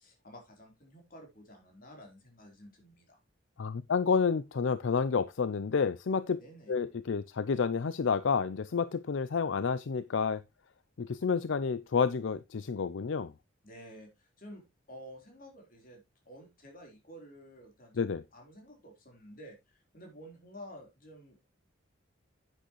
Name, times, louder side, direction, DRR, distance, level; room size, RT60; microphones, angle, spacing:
voice 1, 0.0-3.2 6.4-6.7 13.6-21.5, equal, 45° left, 3.8 m, -51 dB
voice 2, 3.6-6.4 6.7-10.4 11.0-13.3 18.0-18.2, left 5 dB, 70° left, 0.5 m, -30 dB
10.0 x 8.9 x 3.1 m
head